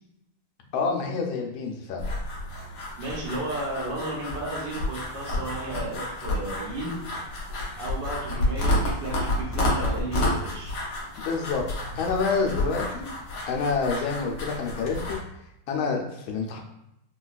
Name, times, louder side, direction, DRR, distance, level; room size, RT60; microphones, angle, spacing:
voice 1, 0.7-2.1 11.2-11.6 11.9-13.2 13.5-15.2 15.7-16.6, left 4 dB, 85° left, 2 dB, 1.4 m, -28 dB
sound 1, 2.0-15.2, left 1 dB, 60° left, 1.0 m, -30 dB
voice 2, 3.0-7.0 7.8-10.8, right 2 dB, 70° right, -4 dB, 1.5 m, -33 dB
4.0 x 2.2 x 2.4 m, 0.83 s
omnidirectional pair, 2.2 m